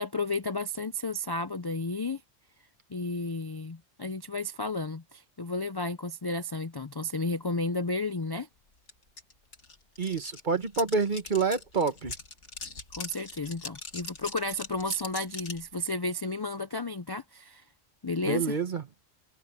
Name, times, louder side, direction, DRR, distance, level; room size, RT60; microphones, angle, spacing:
voice 1, 0.0-2.2 2.9-8.5 12.9-17.6 18.0-18.6, left 2 dB, 40° left, 0.3 m, -32 dB
sound 1, 8.9-9.0 9.2-15.7, left 3 dB, 65° left, 2.8 m, -41 dB
voice 2, 10.0-12.1 18.3-18.8, right 4 dB, 40° right, 1.2 m, -28 dB
omnidirectional pair, 1.3 m